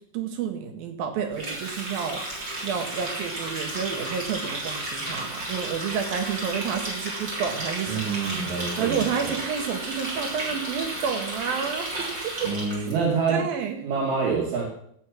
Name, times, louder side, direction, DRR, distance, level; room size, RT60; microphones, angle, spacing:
voice 1, 0.1-2.3 2.6-8.5 8.8-12.8 13.3-13.8, right 7 dB, 90° right, 5 dB, 3.4 m, -30 dB
Water tap faucet, 1.3-12.9, right 1 dB, 30° right, 4.1 m, -33 dB
voice 2, 7.9-9.3 12.4-13.4 13.8-14.7, right 5 dB, 70° right, -5 dB, 4.0 m, -26 dB
16.5 x 6.8 x 6.2 m, 0.69 s
omnidirectional pair, 4.0 m